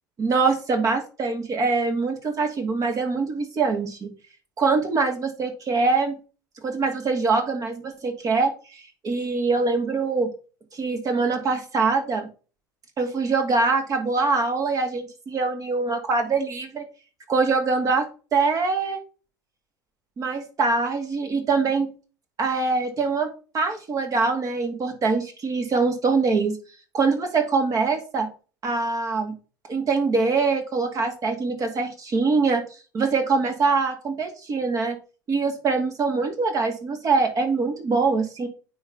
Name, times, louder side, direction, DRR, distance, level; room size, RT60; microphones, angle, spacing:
voice 1, 0.2-4.1 4.6-6.2 6.6-10.3 10.7-12.3 13.0-16.9 17.3-19.0 20.2-21.9 22.4-26.6 26.9-28.3 28.6-29.3 29.7-32.6 32.9-35.0 35.3-38.5, right 4 dB, 35° right, 5 dB, 2.1 m, -23 dB
9.3 x 4.1 x 3.5 m, 0.35 s
figure-of-eight pair, 75°, 10 cm